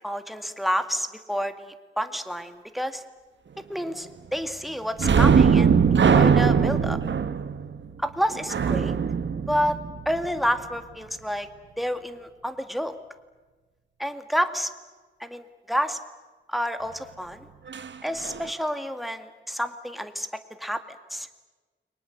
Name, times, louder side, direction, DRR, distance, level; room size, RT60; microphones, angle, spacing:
voice 1, 0.0-3.0 3.7-7.0 8.0-9.0 9.5-9.8 10.1-11.5 11.8-12.9 14.0-14.7 15.2-16.0 16.5-17.5 18.0-20.3 20.6-20.8 21.1-21.3, equal, ahead, 9 dB, 2.0 m, -29 dB
sound 1, 5.0-10.4 17.7-17.9 18.2-18.4, right 6 dB, 70° right, 1.3 m, -21 dB
30.0 x 23.5 x 7.9 m, 1.3 s
wide cardioid pair, 115°, 19 cm